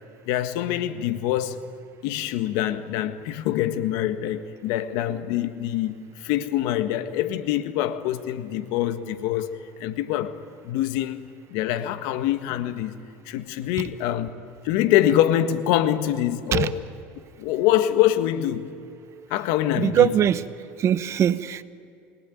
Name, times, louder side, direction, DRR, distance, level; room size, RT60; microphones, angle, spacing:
voice 1, 0.3-1.6 2.0-10.4 10.6-12.9 13.2-14.3 14.6-16.8 17.4-18.7 19.3-20.1, left 12 dB, 70° left, 10 dB, 1.6 m, -25 dB
voice 2, 19.8-20.4 20.8-21.6, right 10 dB, 45° right, 14 dB, 1.1 m, -21 dB
28.5 x 19.5 x 9.3 m, 2.5 s
supercardioid pair, 105°, 7 cm